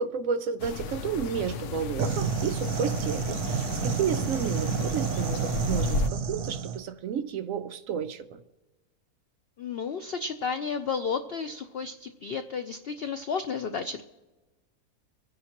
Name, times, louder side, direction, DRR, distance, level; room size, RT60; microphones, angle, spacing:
voice 1, 0.0-8.4, right 7 dB, 70° right, 10 dB, 0.9 m, -32 dB
sound 1, 0.6-6.1, left 4 dB, 65° left, 0.8 m, -34 dB
sound 2, 2.0-6.8, right 6 dB, 85° right, 1.4 m, -30 dB
voice 2, 9.6-14.0, left 5 dB, 80° left, 8 dB, 0.5 m, -32 dB
24.5 x 10.0 x 2.9 m, 1.2 s
omnidirectional pair, 1.6 m